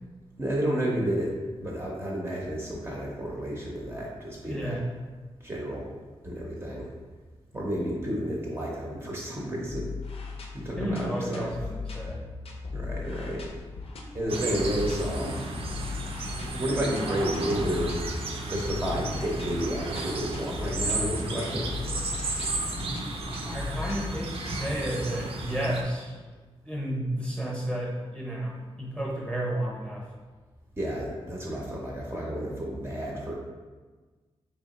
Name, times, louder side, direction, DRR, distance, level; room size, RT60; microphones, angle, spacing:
voice 1, 0.4-4.8 5.4-5.9 6.2-6.9 7.5-9.9 10.5-11.5 12.7-13.5 14.1-15.4 16.6-17.9 18.5-21.7 30.8-33.3, equal, 20° right, -4 dB, 0.6 m, -31 dB
voice 2, 4.4-4.9 10.8-12.2 23.2-26.2 26.6-30.1, right 1 dB, 10° left, -4 dB, 0.8 m, -32 dB
sound 1, 9.7-25.3, left 4 dB, 70° left, 0.5 m, -38 dB
sound 2, 14.3-25.8, right 2 dB, 70° right, 0.5 m, -34 dB
3.2 x 2.9 x 4.0 m, 1.4 s
wide cardioid pair, 140°, 10 cm